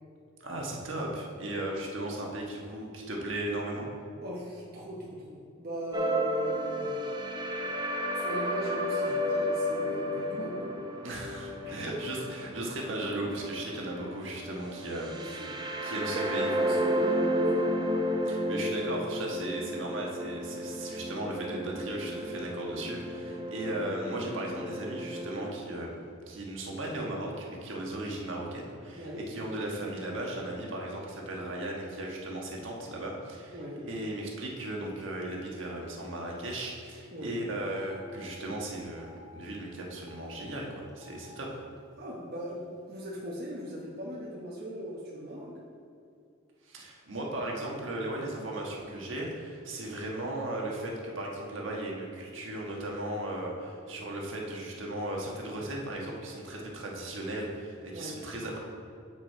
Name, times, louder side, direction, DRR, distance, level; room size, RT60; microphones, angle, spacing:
voice 1, 0.4-3.9 11.0-15.5 15.8-16.5 18.2-26.0 26.3-33.6 33.8-41.6 46.6-58.6, right 1 dB, 70° right, -1 dB, 1.4 m, -36 dB
voice 2, 4.2-7.1 8.1-10.6 11.6-11.8 15.1-15.6 16.0-17.7 29.0-29.3 33.5-33.9 37.1-37.5 42.0-45.6 57.9-58.2, equal, 50° right, -5 dB, 1.0 m, -39 dB
sound 1, 5.9-25.5, equal, 20° right, 0.6 m, -32 dB
Telephone, 35.0-35.2 35.5-35.6 36.5-36.6 36.9-37.0 37.8-38.1 38.9-39.2 40.0-40.3 40.9-41.2 42.0-42.1 42.4-43.1, left 2 dB, ahead, 1.5 m, -57 dB
7.4 x 6.4 x 4.6 m, 2.5 s
head